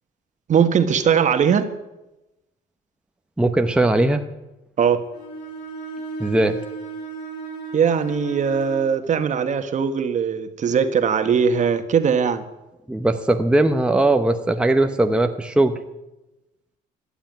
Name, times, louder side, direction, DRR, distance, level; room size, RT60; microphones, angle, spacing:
voice 1, 0.5-1.7 4.8-5.0 7.7-12.4, right 7 dB, 45° right, 8 dB, 1.5 m, -20 dB
voice 2, 3.4-4.2 6.2-6.6 12.9-15.8, right 2 dB, 5° right, 5 dB, 1.0 m, -19 dB
Bowed string instrument, 5.1-8.9, right 4 dB, 80° left, 3.5 m, -35 dB
15.0 x 10.0 x 9.0 m, 0.99 s
cardioid pair, 110°, 17 cm